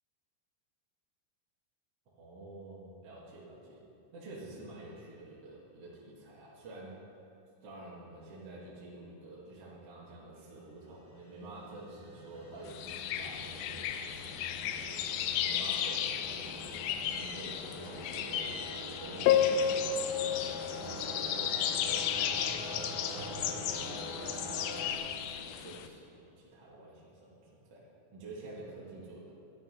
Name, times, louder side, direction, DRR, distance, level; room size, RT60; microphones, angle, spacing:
voice 1, 2.1-3.8 4.1-7.0 7.6-15.0 15.4-16.5 17.1-18.6 18.9-22.3 22.7-29.3, right 2 dB, 40° right, -7 dB, 2.6 m, -49 dB
sound 1, 10.8-24.9, left 1 dB, 5° right, 0.5 m, -45 dB
sound 2, 12.7-25.9, left 9 dB, 80° left, 2.4 m, -33 dB
12.5 x 11.0 x 5.5 m, 2.6 s
omnidirectional pair, 5.4 m